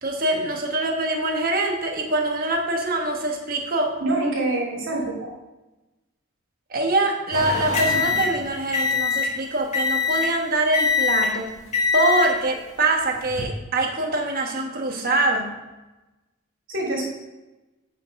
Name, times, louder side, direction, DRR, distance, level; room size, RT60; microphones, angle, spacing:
voice 1, 0.0-3.9 6.7-11.5 11.9-15.5, right 2 dB, 45° right, 2 dB, 1.3 m, -24 dB
voice 2, 4.0-5.3 16.7-17.0, right 2 dB, 70° right, -2 dB, 2.8 m, -25 dB
sound 1, 7.3-9.4 9.7-10.4 10.7-11.4 11.7-12.4 13.1-13.4, left 5 dB, 35° left, 1.8 m, -23 dB
8.2 x 5.5 x 4.8 m, 1.1 s
head